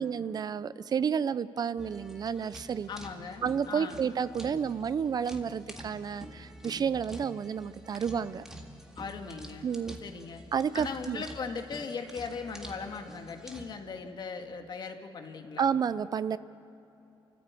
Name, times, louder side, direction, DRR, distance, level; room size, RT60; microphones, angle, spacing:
voice 1, 0.0-2.9 3.4-8.5 9.6-10.0 10.5-11.2 15.6-16.4, right 7 dB, 45° right, 16 dB, 0.5 m, -30 dB
sound 1, 1.8-13.7, equal, 5° right, 2.0 m, -48 dB
voice 2, 2.9-4.1 9.0-9.7 10.0-10.4 10.7-15.8, left 5 dB, 50° left, 5 dB, 1.9 m, -39 dB
29.0 x 14.5 x 8.4 m, 2.9 s
cardioid pair, 130°, 9 cm